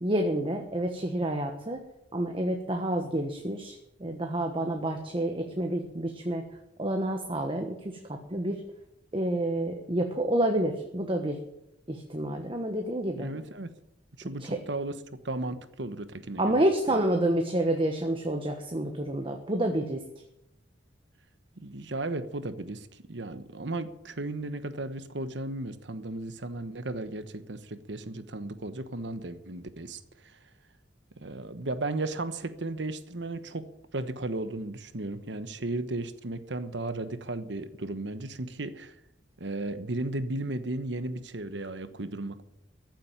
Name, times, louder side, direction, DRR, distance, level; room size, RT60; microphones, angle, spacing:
voice 1, 0.0-1.8 2.1-6.4 6.8-8.6 9.1-11.4 11.9-13.3 14.4-14.6 16.4-20.1, right 1 dB, 30° right, 4 dB, 1.3 m, -29 dB
voice 2, 13.2-13.7 14.2-15.0 15.2-16.6 16.9-17.0 21.6-30.4 31.2-38.9 39.4-42.4, right 2 dB, 70° right, 11 dB, 1.2 m, -35 dB
15.0 x 7.7 x 8.9 m, 0.82 s
head